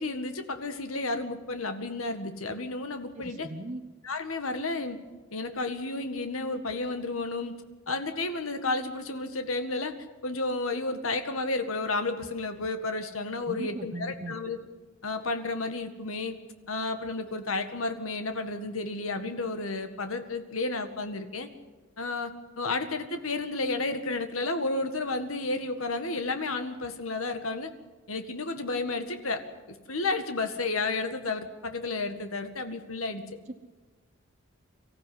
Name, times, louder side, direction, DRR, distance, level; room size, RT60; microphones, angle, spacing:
voice 1, 0.0-3.5 4.0-5.0 5.3-7.5 7.9-9.9 10.2-14.6 15.0-16.4 16.7-21.5 22.0-27.7 28.1-29.4 29.9-33.2, left 3 dB, 80° left, 8 dB, 1.8 m, -32 dB
voice 2, 3.1-3.8 13.4-14.3 33.5-33.6, right 1 dB, 35° right, 1 dB, 1.1 m, -38 dB
24.5 x 15.0 x 9.6 m, 1.3 s
head